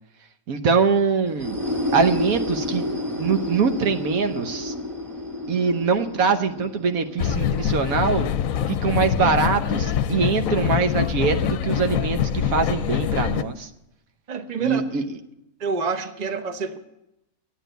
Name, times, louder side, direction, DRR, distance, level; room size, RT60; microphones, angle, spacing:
voice 1, 0.5-1.6 1.9-2.8 3.2-4.7 5.5-8.3 8.7-13.7 14.6-15.2, right 5 dB, 70° right, 7 dB, 1.4 m, -23 dB
sound 1, 1.3-8.9, left 1 dB, 15° right, 2.2 m, -31 dB
sound 2, 7.2-13.4, left 9 dB, 70° left, 1.0 m, -24 dB
sound 3, 8.9-10.8 11.8-13.3, equal, 5° left, 0.3 m, -41 dB
voice 2, 14.3-14.8 15.6-16.8, right 4 dB, 30° right, 7 dB, 0.9 m, -27 dB
12.0 x 9.1 x 9.1 m, 0.87 s
omnidirectional pair, 1.5 m